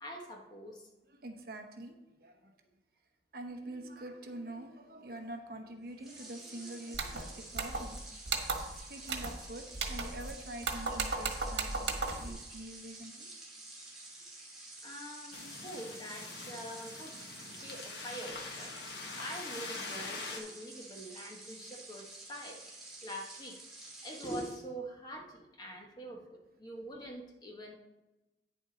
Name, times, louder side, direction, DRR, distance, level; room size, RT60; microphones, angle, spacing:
voice 1, 0.0-0.9 12.3-12.4 14.8-17.2 17.6-18.8 19.1-22.6 23.0-23.6 24.0-27.8, right 1 dB, 25° left, 1 dB, 1.3 m, -44 dB
voice 2, 1.1-2.6 3.3-8.0 8.9-11.9 12.2-13.3 20.3-20.5, right 1 dB, 55° right, 5 dB, 1.0 m, -45 dB
sound 1, 6.0-24.6, right 2 dB, ahead, 2.7 m, -50 dB
sound 2, 6.9-7.2 7.6-8.0 8.3-8.8 9.1-9.4 9.7-10.3 10.6-12.3, right 4 dB, 85° right, 1.4 m, -35 dB
sound 3, 15.3-20.4, left 3 dB, 70° left, 1.4 m, -44 dB
9.5 x 6.9 x 4.1 m, 1.0 s
head